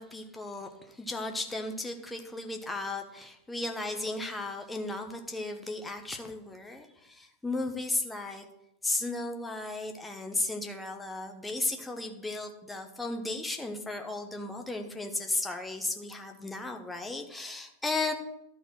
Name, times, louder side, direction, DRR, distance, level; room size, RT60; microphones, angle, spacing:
voice 1, 0.0-8.4 8.8-18.1, left 2 dB, 10° left, 4 dB, 1.1 m, -35 dB
12.0 x 4.2 x 6.0 m, 0.81 s
figure-of-eight pair, 90°, 0 cm